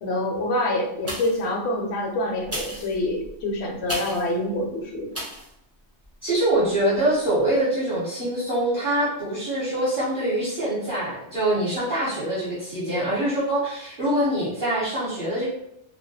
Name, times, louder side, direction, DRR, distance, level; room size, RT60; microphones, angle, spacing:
voice 1, 0.0-5.1, left 1 dB, 70° left, 0 dB, 0.8 m, -26 dB
sound 1, 1.0-1.6 2.4-4.3 5.1-5.5 6.0-6.1, right 1 dB, 20° right, 0.4 m, -34 dB
voice 2, 6.2-15.5, right 1 dB, 50° right, -8 dB, 0.8 m, -24 dB
2.3 x 2.1 x 2.7 m, 0.77 s
omnidirectional pair, 1.2 m